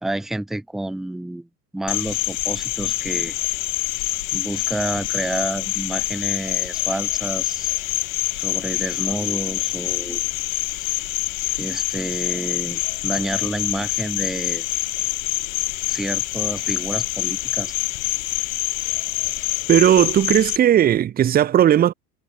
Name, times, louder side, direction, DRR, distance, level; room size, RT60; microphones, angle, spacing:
voice 1, 0.0-1.5 1.7-3.3 4.3-7.7 8.3-10.3 10.7-11.0 11.6-14.7 15.9-17.7, right 1 dB, ahead, 0.4 m, -29 dB
Cricket, 1.9-20.6, left 21 dB, 55° left, 0.9 m, -26 dB
voice 2, 19.7-21.9, right 11 dB, 20° right, 0.8 m, -16 dB
hypercardioid pair, 95°, 47 cm